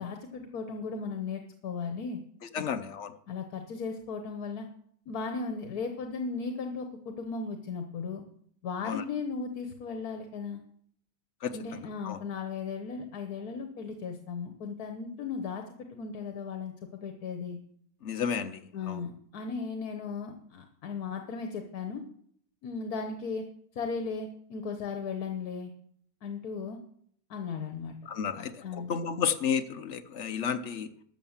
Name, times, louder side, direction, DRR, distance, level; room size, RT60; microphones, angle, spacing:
voice 1, 0.0-2.2 2.6-2.7 3.3-4.7 5.1-8.2 8.6-10.6 11.5-15.6 15.9-17.6 18.7-22.0 22.6-23.5 23.7-25.7 26.2-26.8 27.3-28.0 28.3-28.9, left 5 dB, 75° left, 5 dB, 1.5 m, -36 dB
voice 2, 2.5-3.1 8.8-9.0 11.4-11.6 12.0-12.2 18.0-18.6 18.9-19.0 28.1-28.5 28.9-30.9, left 7 dB, 55° left, 11 dB, 1.0 m, -31 dB
12.5 x 6.4 x 7.2 m, 0.65 s
omnidirectional pair, 1.6 m